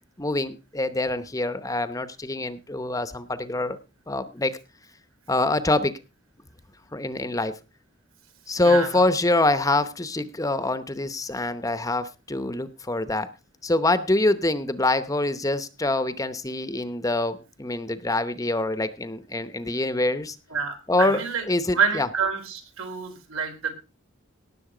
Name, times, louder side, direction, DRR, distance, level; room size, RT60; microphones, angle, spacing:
voice 1, 0.2-3.8 4.1-4.6 5.3-5.9 6.9-7.5 8.5-13.3 13.6-20.4 20.9-22.1, left 2 dB, 15° left, 12 dB, 0.8 m, -25 dB
voice 2, 8.6-8.9 20.5-21.4 21.7-23.7, right 6 dB, 85° right, 4 dB, 4.1 m, -27 dB
18.0 x 7.4 x 4.9 m, 0.31 s
head